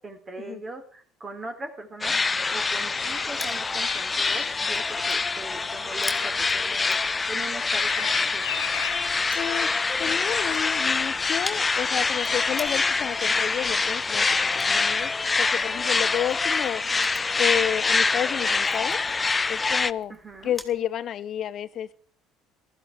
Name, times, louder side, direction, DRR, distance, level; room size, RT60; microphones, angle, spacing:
voice 1, 0.0-7.0 7.3-8.4 20.1-20.5, right 2 dB, 35° right, 5 dB, 3.9 m, -40 dB
sound 1, 2.0-19.9, left 4 dB, 25° left, 0.6 m, -25 dB
Crushing, 2.2-20.8, left 2 dB, 10° left, 3.1 m, -46 dB
Bird vocalization bird call bird song, 2.7-14.5 16.2-16.4, left 12 dB, 90° left, 1.1 m, -42 dB
voice 2, 9.3-9.7 10.0-14.3 14.5-15.1 15.4-16.8 17.4-19.0 19.5-20.2 20.4-21.9, left 10 dB, 55° left, 15 dB, 1.0 m, -30 dB
15.0 x 13.0 x 4.8 m, 0.43 s
hypercardioid pair, 65°, 0 cm